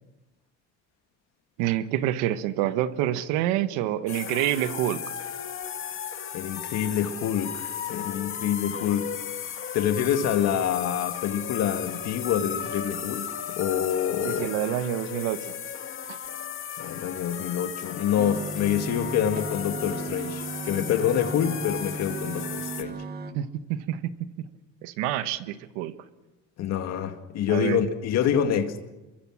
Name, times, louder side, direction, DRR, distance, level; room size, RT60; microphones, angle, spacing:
voice 1, 1.6-5.0 14.2-15.5 16.1-16.2 23.3-24.3 24.8-25.9 27.5-27.8, right 12 dB, 85° right, 1.5 m, -27 dB
sound 1, 4.1-22.8, left 8 dB, 45° left, 2.0 m, -35 dB
voice 2, 6.3-9.1 9.7-14.5 16.8-23.0 26.6-28.8, left 9 dB, 65° left, 2.1 m, -27 dB
sound 2, 18.2-23.3, right 2 dB, 35° right, 1.7 m, -36 dB
25.5 x 22.5 x 6.4 m
supercardioid pair, 95°, 29 cm